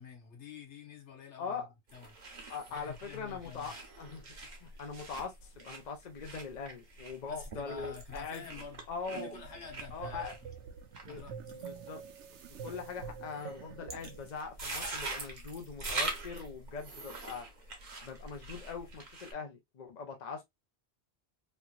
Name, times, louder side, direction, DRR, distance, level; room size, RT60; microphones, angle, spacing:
voice 1, 0.0-1.7 1.9-2.2 2.7-3.7 4.7-4.8 7.3-8.8 9.1-10.4 11.1-11.4, left 7 dB, 85° left, 1.4 m, -48 dB
voice 2, 1.4-1.7 2.5-4.2 4.6-8.4 8.9-9.4 9.9-10.3 11.1-12.0 12.6-17.5 18.0-20.4, left 5 dB, 45° left, 0.8 m, -42 dB
sound 1, 1.9-19.3, right 3 dB, 45° right, 1.0 m, -44 dB
sound 2, 9.2-14.3, right 6 dB, 90° right, 0.9 m, -46 dB
3.3 x 2.8 x 2.3 m
omnidirectional pair, 1.1 m